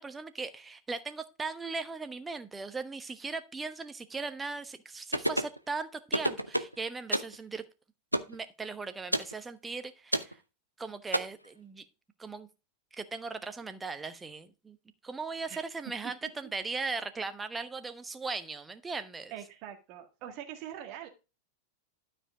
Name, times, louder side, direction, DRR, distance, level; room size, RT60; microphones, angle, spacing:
voice 1, 0.0-7.6 8.3-10.4 10.8-11.8 12.2-12.5 12.9-14.8 15.0-19.3, right 4 dB, 15° right, 1.0 m, -38 dB
sound 1, 5.1-5.6 6.1-6.8 7.1-7.4 8.1-8.3 9.1-9.3 10.1-10.3 11.1-11.2, right 1 dB, 90° right, 0.7 m, -28 dB
voice 2, 19.3-21.1, right 10 dB, 40° right, 1.8 m, -43 dB
12.5 x 5.1 x 4.9 m
figure-of-eight pair, 90°, 0 cm